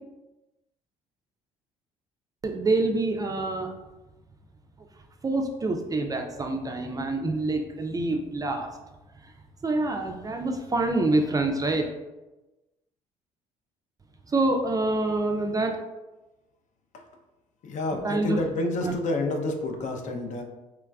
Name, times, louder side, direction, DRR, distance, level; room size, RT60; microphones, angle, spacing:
voice 1, 2.4-3.7 5.2-8.7 9.6-11.9 14.3-15.8 18.0-18.4 18.8-18.9, right 2 dB, 25° right, 4 dB, 0.3 m, -26 dB
voice 2, 17.6-20.4, left 2 dB, 50° left, 3 dB, 0.5 m, -29 dB
3.0 x 2.3 x 2.2 m, 1.1 s
supercardioid pair, 60°, 16 cm